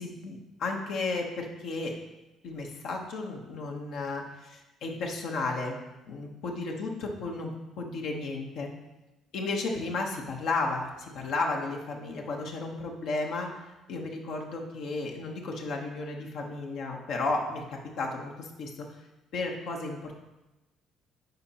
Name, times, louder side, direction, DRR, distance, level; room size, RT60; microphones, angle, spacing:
voice 1, 0.0-1.9 2.4-5.8 6.1-8.7 9.3-19.0 19.3-20.1, left 3 dB, 65° left, 1 dB, 0.9 m, -33 dB
9.1 x 4.4 x 2.9 m, 1.0 s
hypercardioid pair, 50°, 0 cm